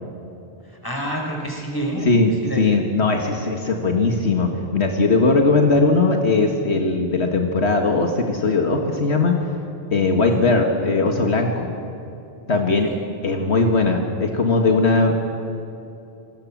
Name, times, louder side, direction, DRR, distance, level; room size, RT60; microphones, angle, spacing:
voice 1, 0.7-2.1 2.4-2.6 10.3-10.5 12.5-13.0, right 1 dB, 20° left, 1 dB, 4.8 m, -29 dB
voice 2, 2.1-9.4 9.9-11.7 12.5-12.9 13.2-15.2, left 3 dB, 75° left, 3 dB, 2.0 m, -19 dB
29.0 x 20.5 x 7.4 m, 2.8 s
omnidirectional pair, 1.1 m